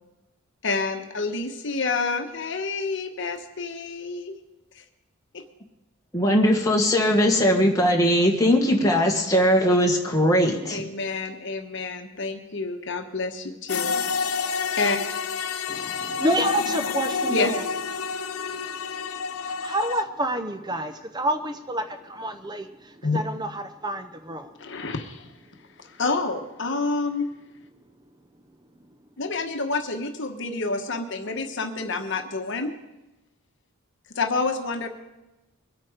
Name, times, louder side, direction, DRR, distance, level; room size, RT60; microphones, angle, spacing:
voice 1, 0.6-4.3 4.7-4.8 5.3-5.4 10.7-13.9 14.3-14.5 14.8-15.0 17.3-17.6 23.0-23.2 24.6-25.3 25.8-27.3 29.2-32.7 34.1-34.9, left 3 dB, 55° left, 6 dB, 1.3 m, -28 dB
voice 2, 6.1-10.8, equal, 15° left, 0 dB, 1.8 m, -20 dB
sound 1, 13.7-20.0, left 5 dB, 70° left, 0.6 m, -29 dB
voice 3, 15.7-17.6 19.4-24.5, right 1 dB, 20° right, 8 dB, 0.5 m, -29 dB
22.5 x 8.6 x 5.1 m, 1.0 s
head